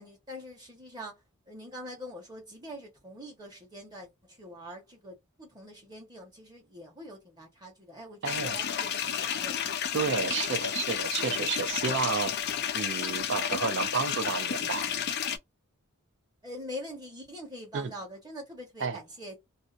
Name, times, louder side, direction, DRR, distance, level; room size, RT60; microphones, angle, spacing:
voice 1, 0.0-9.6 10.2-10.4 16.4-19.4, equal, 20° right, 1.1 m, -44 dB
sound 1, 8.2-15.4, left 8 dB, 45° left, 0.3 m, -31 dB
voice 2, 8.2-8.6 9.9-12.3 12.7-14.8 17.7-17.9 18.8-19.0, right 5 dB, 55° right, 0.5 m, -31 dB
2.7 x 2.1 x 2.5 m
head